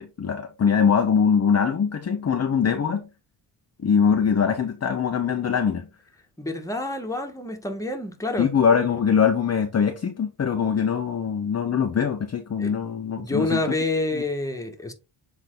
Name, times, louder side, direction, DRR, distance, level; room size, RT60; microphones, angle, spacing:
voice 1, 0.0-3.1 3.8-5.9 8.4-13.6 14.1-14.2, left 7 dB, 30° left, 0.8 m, -22 dB
voice 2, 6.4-8.5 12.6-12.7 13.2-14.9, left 2 dB, 5° left, 1.5 m, -28 dB
7.5 x 3.6 x 3.8 m
cardioid pair, 90°, 50 cm